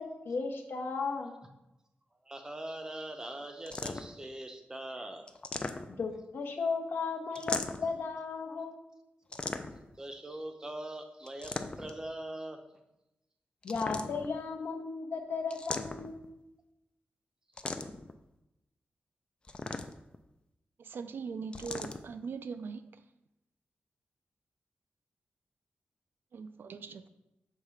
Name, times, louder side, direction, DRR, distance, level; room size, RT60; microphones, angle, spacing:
voice 1, 0.0-1.3 6.0-8.7 13.6-16.2, left 4 dB, 70° left, 0.8 m, -35 dB
voice 2, 2.3-5.3 10.0-12.6, right 1 dB, 20° right, 0.6 m, -42 dB
sound 1, 3.7-4.2 5.3-6.2 7.3-8.0 9.3-10.0 11.3-12.0 13.6-14.4 15.5-16.3 17.6-18.1 19.4-20.2 21.5-22.0, left 3 dB, 25° left, 0.3 m, -38 dB
voice 3, 20.9-22.8 26.3-27.1, right 5 dB, 65° right, 0.3 m, -40 dB
6.5 x 3.2 x 4.9 m
wide cardioid pair, 165°, 4 cm